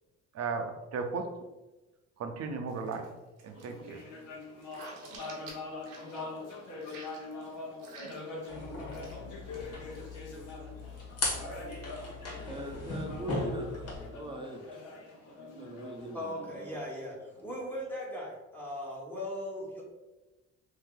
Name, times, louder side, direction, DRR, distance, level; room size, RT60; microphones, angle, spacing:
voice 1, 0.3-1.2 2.2-3.1 3.4-4.0, right 4 dB, 60° right, 5 dB, 0.6 m, -35 dB
sound 1, 2.7-3.1 3.4-6.5 6.8-8.5 8.9-9.2 9.5-10.2, right 3 dB, 85° right, 0.9 m, -51 dB
sound 2, 3.5-17.2, left 2 dB, 80° left, 1.0 m, -44 dB
sound 3, 8.5-14.1, left 2 dB, 55° left, 1.4 m, -38 dB
voice 2, 12.4-14.6 15.6-16.8 17.4-17.5, right 1 dB, 15° right, 1 dB, 0.6 m, -41 dB
voice 3, 16.1-17.1 17.4-19.8, left 1 dB, 5° left, -4 dB, 1.0 m, -38 dB
2.8 x 2.7 x 3.7 m, 1.1 s
cardioid pair, 90°, 30 cm